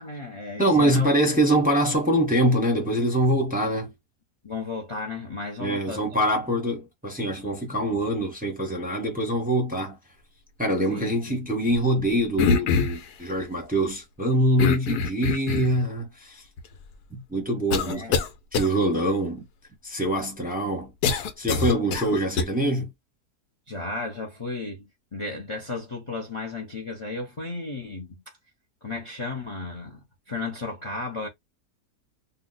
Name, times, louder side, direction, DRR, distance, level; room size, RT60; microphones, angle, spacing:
voice 1, 0.0-1.1 4.4-6.0 10.9-11.4 17.9-18.2 23.7-28.4 28.8-31.3, left 3 dB, 45° left, 0.4 m, -34 dB
voice 2, 0.6-3.9 5.6-10.0 10.6-16.4 17.1-18.2 18.5-19.5 19.8-20.9 21.4-22.9, right 1 dB, 10° right, 0.6 m, -24 dB
sound 1, 12.4-13.1 14.6-15.8 16.6-16.7 17.7-18.3 18.5-18.7 21.0-22.4, left 5 dB, 80° left, 1.2 m, -24 dB
2.7 x 2.1 x 3.9 m
omnidirectional pair, 1.7 m